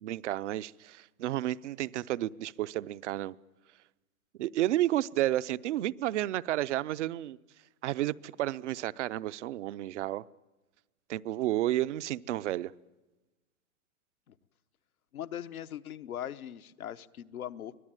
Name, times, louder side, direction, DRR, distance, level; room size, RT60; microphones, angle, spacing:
voice 1, 0.0-3.3 4.4-7.4 7.8-10.3 11.1-12.7, right 14 dB, 55° right, 0.7 m, -31 dB
voice 2, 15.1-17.8, left 10 dB, 85° left, 1.0 m, -40 dB
24.5 x 18.0 x 9.0 m
hypercardioid pair, 135°, 42 cm